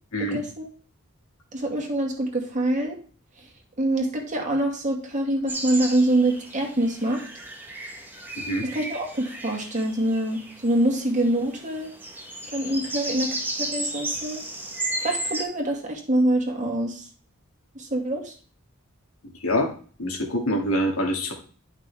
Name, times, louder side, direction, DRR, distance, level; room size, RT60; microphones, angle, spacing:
voice 1, 0.2-0.7 1.5-3.0 3.8-7.2 8.6-11.9 12.5-14.4 15.0-17.1 17.8-18.3, right 1 dB, 35° right, 1 dB, 2.1 m, -25 dB
sound 1, 5.5-15.4, right 1 dB, 10° right, 1.1 m, -34 dB
voice 2, 19.4-19.7 20.0-21.3, equal, 90° left, 2 dB, 2.3 m, -25 dB
11.0 x 6.0 x 3.4 m, 0.41 s
head